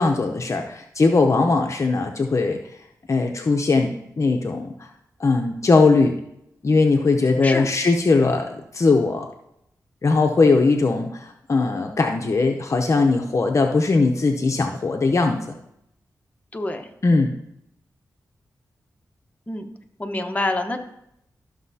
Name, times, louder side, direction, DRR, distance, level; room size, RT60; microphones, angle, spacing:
voice 1, 0.0-2.6 3.1-4.9 5.2-6.2 6.6-9.3 10.0-15.4 17.0-17.3, left 3 dB, 50° left, 4 dB, 0.7 m, -20 dB
voice 2, 16.5-16.8 19.5-19.7 20.0-20.8, left 2 dB, 20° left, 4 dB, 1.0 m, -26 dB
13.0 x 6.3 x 2.8 m, 0.80 s
cardioid pair, 70°, 7 cm